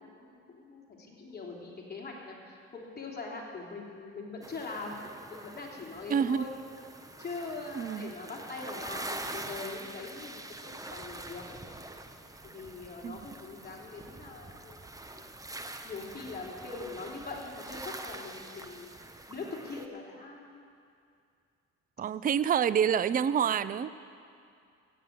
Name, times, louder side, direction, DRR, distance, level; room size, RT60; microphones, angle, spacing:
voice 1, 0.0-5.0 5.3-6.5 7.2-11.4 12.4-14.8 15.1-15.2 15.8-19.0 19.3-20.6, left 3 dB, 30° left, -2 dB, 3.2 m, -42 dB
sound 1, 4.4-19.9, right 2 dB, 10° right, 0.9 m, -45 dB
voice 2, 6.1-6.4 7.8-8.1 13.0-13.2 22.0-23.9, right 8 dB, 30° right, 16 dB, 0.4 m, -27 dB
15.5 x 9.4 x 7.4 m, 2.4 s
cardioid pair, 90°, 30 cm